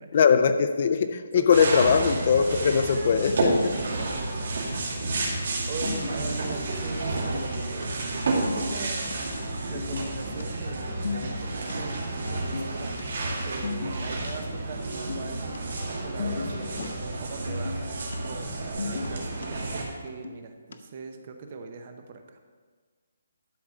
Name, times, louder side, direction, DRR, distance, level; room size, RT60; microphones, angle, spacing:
voice 1, 0.1-3.7 16.8-16.9, left 6 dB, 30° left, 9 dB, 0.4 m, -21 dB
voice 2, 1.3-1.7 3.7-9.3 9.6-13.1 13.4-17.8 18.2-22.4, right 4 dB, 25° right, 6 dB, 0.7 m, -41 dB
sound 1, 1.5-19.8, right 2 dB, 45° right, 2.0 m, -30 dB
sound 2, 5.2-5.3 5.5-5.6 5.8-6.6 7.1-7.9 8.1-8.2 8.5-9.2 9.7-10.4 10.7-11.7 12.2-13.0 13.3-13.4 13.6-14.3 14.8-15.6 15.9-16.9 17.3-18.2 18.4-19.5 19.9-20.7, left 5 dB, 55° left, 0.8 m, -36 dB
12.0 x 4.7 x 6.6 m, 1.5 s
hypercardioid pair, 180°, 0 cm